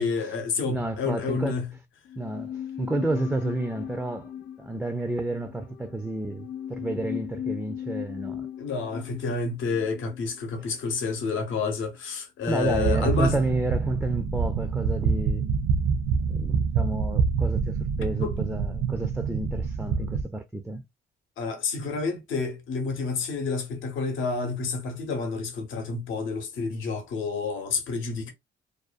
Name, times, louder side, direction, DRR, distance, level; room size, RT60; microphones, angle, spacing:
voice 1, 0.0-1.7 8.6-13.4 18.2-18.4 21.4-28.3, left 4 dB, 80° left, 0.8 m, -29 dB
voice 2, 0.7-1.5 2.2-4.3 4.6-8.5 12.5-15.5 16.3-20.8, right 2 dB, 5° right, 0.3 m, -30 dB
sound 1, 2.1-11.4 11.7-11.8, left 9 dB, 60° left, 0.4 m, -38 dB
sound 2, 12.6-20.2, right 5 dB, 75° right, 0.4 m, -26 dB
2.5 x 2.2 x 2.4 m
cardioid pair, 90°, 20 cm